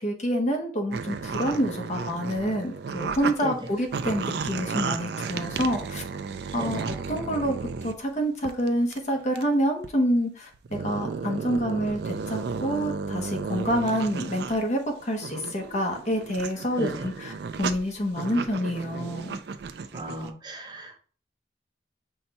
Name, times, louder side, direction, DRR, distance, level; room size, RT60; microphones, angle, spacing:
voice 1, 0.0-6.0 6.5-7.6 7.8-17.3 17.6-19.4, equal, 40° left, 3 dB, 0.8 m, -27 dB
sound 1, 0.9-3.3 3.7-8.0 8.4-9.0 9.4-9.5 9.8-9.9 10.5-14.6 15.0-20.3, right 5 dB, 65° right, 0.4 m, -33 dB
voice 2, 16.8-17.1 19.9-21.0, equal, 25° right, 3 dB, 0.7 m, -35 dB
5.7 x 2.2 x 4.0 m, 0.42 s
head